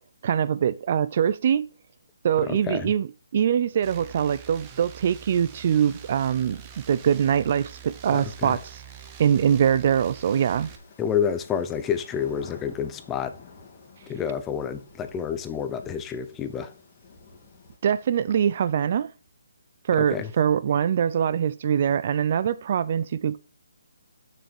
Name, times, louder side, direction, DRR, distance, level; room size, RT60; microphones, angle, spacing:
voice 1, 0.2-1.7 2.2-6.6 6.9-8.8 9.2-10.7 17.8-19.1 19.9-23.4, right 8 dB, 40° right, 0.3 m, -23 dB
voice 2, 2.4-2.9 8.1-8.6 11.0-13.3 14.1-16.7 20.0-20.3, left 8 dB, 10° left, 0.6 m, -29 dB
sound 1, 3.8-10.8, right 9 dB, 20° right, 0.9 m, -45 dB
sound 2, 5.3-17.8, left 4 dB, 30° left, 2.3 m, -52 dB
6.7 x 6.3 x 4.5 m
hypercardioid pair, 160°, 0 cm